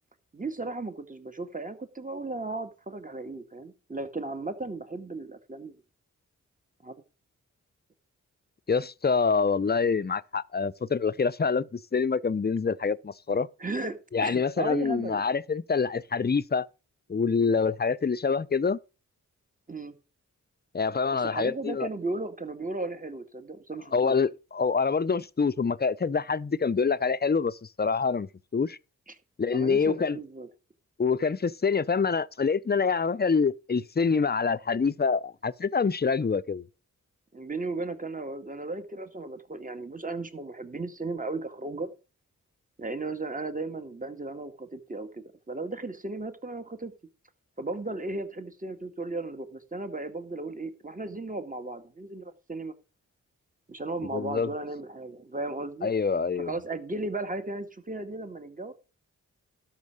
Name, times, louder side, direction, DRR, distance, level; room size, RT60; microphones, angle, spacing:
voice 1, 0.3-5.8 6.8-7.0 13.6-15.2 19.7-20.0 21.1-24.2 29.1-29.2 29.5-30.5 37.3-41.9 42.8-46.9 47.6-52.7 53.7-55.9 56.4-58.7, right 2 dB, 25° right, 2.0 m, -35 dB
voice 2, 8.7-13.5 14.1-16.7 17.1-18.8 20.7-21.9 23.9-28.8 29.4-30.2 31.0-36.6 54.1-54.5 55.8-56.5, left 5 dB, 30° left, 0.7 m, -26 dB
12.5 x 5.9 x 6.4 m
cardioid pair, 50°, 33 cm